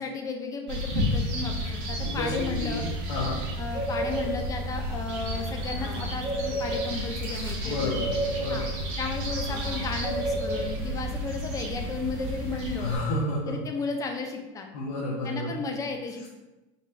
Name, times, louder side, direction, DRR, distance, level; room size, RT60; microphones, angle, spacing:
voice 1, 0.0-2.8 3.6-8.0 8.5-8.7 9.0-12.9 13.5-14.7 15.2-16.3, left 4 dB, 20° left, 3 dB, 0.5 m, -34 dB
sound 1, 0.7-13.0, equal, 65° right, 1.4 m, -31 dB
voice 2, 2.6-3.4 7.6-8.8 12.8-13.5 14.7-15.6, left 1 dB, 90° left, -5 dB, 1.0 m, -31 dB
4.1 x 2.4 x 4.3 m, 1.1 s
supercardioid pair, 145°, 17 cm